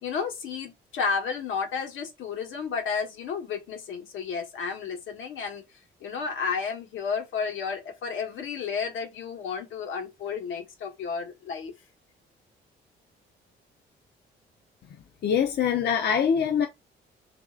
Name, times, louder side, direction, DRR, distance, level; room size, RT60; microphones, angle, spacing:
voice 1, 0.0-11.7, left 5 dB, 80° left, 1.2 m, -32 dB
voice 2, 15.2-16.7, left 7 dB, 55° left, 0.6 m, -23 dB
3.1 x 2.7 x 3.7 m
cardioid pair, 90°, 20 cm